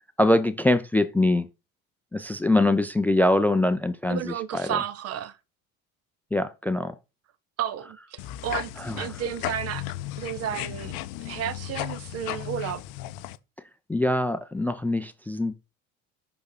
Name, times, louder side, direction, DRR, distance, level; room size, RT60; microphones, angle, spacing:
voice 1, 0.2-1.5 2.1-4.8 6.3-6.9 8.8-9.1 13.9-15.5, left 1 dB, 5° left, 0.5 m, -23 dB
voice 2, 4.1-5.4 7.6-8.7 9.0-9.8 10.2-12.8, right 9 dB, 35° right, 0.6 m, -32 dB
sound 1, 8.2-13.4, left 14 dB, 50° left, 0.6 m, -35 dB
5.9 x 5.4 x 3.8 m
figure-of-eight pair, 65°, 42 cm